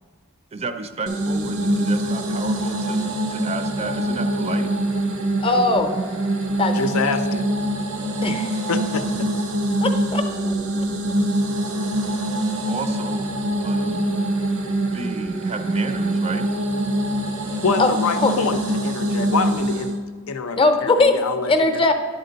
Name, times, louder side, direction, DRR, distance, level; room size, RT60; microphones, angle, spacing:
voice 1, 0.5-4.7 12.6-14.1 14.9-16.5, right 3 dB, 30° right, 8 dB, 0.4 m, -32 dB
sound 1, 1.1-20.0, right 1 dB, 85° right, 0.8 m, -24 dB
voice 2, 5.4-6.0 6.6-6.8 8.2-8.5 9.8-10.2 17.8-17.9 18.2-18.3 20.6-21.9, left 3 dB, 25° left, 6 dB, 0.6 m, -19 dB
voice 3, 6.7-7.4 8.7-9.3 9.9-10.0 17.6-19.9 20.3-21.8, left 4 dB, 80° left, 8 dB, 0.5 m, -26 dB
10.5 x 4.3 x 4.0 m, 1.4 s
head